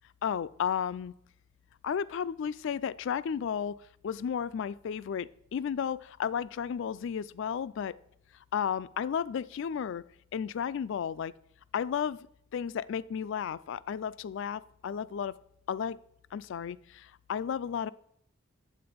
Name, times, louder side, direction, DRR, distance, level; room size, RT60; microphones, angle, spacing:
voice 1, 0.2-1.1 1.8-8.0 8.5-10.0 10.3-11.3 11.7-12.2 12.5-15.4 15.7-16.0 16.3-17.9, left 7 dB, 60° left, 18 dB, 0.3 m, -33 dB
8.8 x 7.6 x 5.1 m, 0.73 s
head